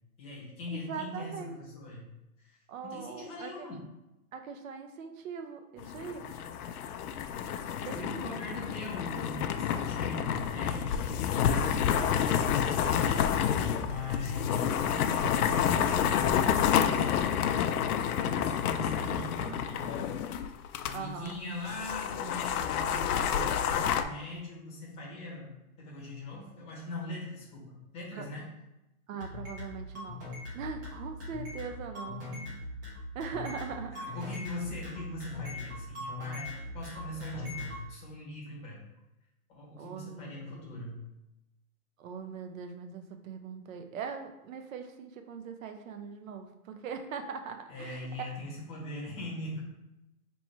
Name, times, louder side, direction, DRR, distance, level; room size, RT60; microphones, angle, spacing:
voice 1, 0.2-2.1 2.4-3.8 7.4-16.3 16.7-17.3 18.2-20.1 20.8-25.5 25.8-28.5 33.9-38.8 39.5-41.0 47.7-49.6, left 2 dB, 15° left, -4 dB, 0.8 m, -41 dB
voice 2, 0.7-1.6 2.7-3.7 4.3-6.3 7.8-8.7 20.9-21.4 28.1-28.3 29.1-32.2 33.1-34.2 39.8-40.6 42.0-48.3, right 6 dB, 65° right, 6 dB, 0.7 m, -41 dB
sound 1, 5.8-21.0 21.3-21.4 21.7-24.0, left 8 dB, 80° left, 0.5 m, -29 dB
sound 2, 29.2-37.8, left 2 dB, 15° right, 0.4 m, -40 dB
3.1 x 3.0 x 4.3 m, 0.95 s
hypercardioid pair, 155°, 44 cm